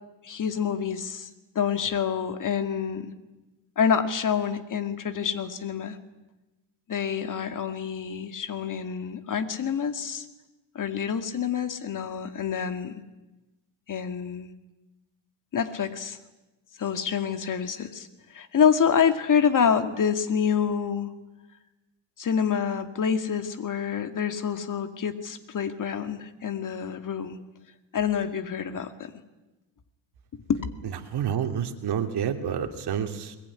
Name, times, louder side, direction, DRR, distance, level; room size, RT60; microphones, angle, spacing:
voice 1, 0.2-1.3 1.6-3.1 3.8-6.0 6.9-10.3 10.7-13.0 13.9-14.5 15.5-16.2 16.8-21.1 22.2-27.4 27.9-29.1 30.5-30.6, left 7 dB, 40° left, 9 dB, 2.2 m, -27 dB
voice 2, 31.1-33.4, right 8 dB, 50° right, 5 dB, 2.9 m, -28 dB
22.0 x 21.5 x 9.9 m, 1.1 s
cardioid pair, 120°, 49 cm